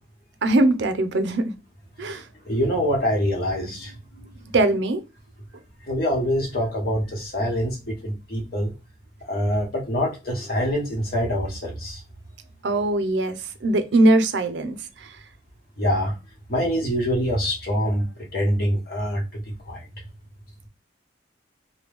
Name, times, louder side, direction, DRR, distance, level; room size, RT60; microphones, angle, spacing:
voice 1, 0.4-1.6 2.0-2.2 4.5-5.0 12.6-15.1, right 2 dB, 70° right, 0.5 m, -21 dB
voice 2, 2.0-4.5 5.8-8.7 9.3-12.0 15.8-16.2 16.5-19.9, equal, 50° left, 1.2 m, -25 dB
2.9 x 2.2 x 3.4 m
head